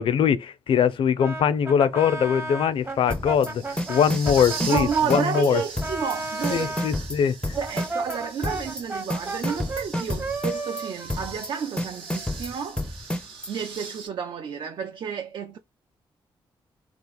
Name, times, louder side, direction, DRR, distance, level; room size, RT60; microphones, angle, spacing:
voice 1, 0.0-5.6 6.5-7.6, left 8 dB, 70° left, 0.4 m, -22 dB
sound 1, 0.9-14.1, right 5 dB, 90° right, 1.1 m, -41 dB
Brass instrument, 1.2-6.9 7.5-12.3, right 3 dB, 25° right, 0.8 m, -34 dB
sound 2, 3.1-3.5 3.8-5.5 5.8-6.2 6.4-8.2 8.4-8.8 9.1-10.8 11.1-11.5 11.8-13.5, left 1 dB, 10° left, 0.4 m, -29 dB
voice 2, 4.6-7.1 7.6-12.8 13.5-15.6, right 7 dB, 60° right, 0.4 m, -30 dB
2.8 x 2.4 x 3.9 m
cardioid pair, 80°, 9 cm